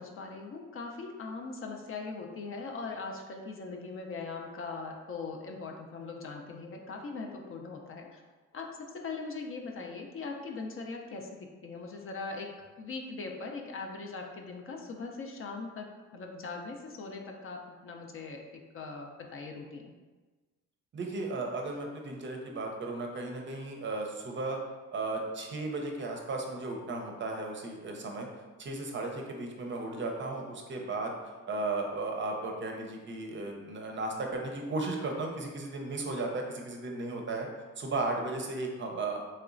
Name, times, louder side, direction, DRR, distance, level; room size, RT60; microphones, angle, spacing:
voice 1, 0.0-8.2 8.5-12.5 12.8-19.9, left 4 dB, 45° left, 2 dB, 0.5 m, -40 dB
voice 2, 20.9-24.6 24.9-28.3 28.6-31.1 31.5-37.5 37.8-39.2, right 2 dB, 40° right, 2 dB, 0.5 m, -35 dB
3.1 x 2.9 x 2.5 m, 1.3 s
cardioid pair, 90°, 30 cm